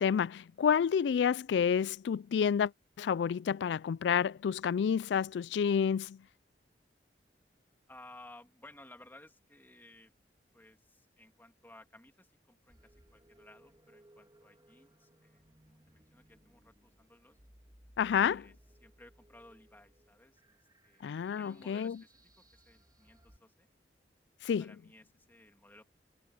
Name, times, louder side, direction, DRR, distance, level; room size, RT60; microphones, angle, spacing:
voice 1, 0.0-2.7 3.0-6.2 18.0-18.4 21.0-22.0 24.4-24.7, left 7 dB, 70° left, 0.3 m, -29 dB
voice 2, 7.9-10.1 10.5-17.4 18.1-18.5 18.8-23.7 24.6-25.9, left 1 dB, 10° left, 2.3 m, -58 dB
sound 1, 12.7-23.4, right 1 dB, 25° right, 3.0 m, -63 dB
head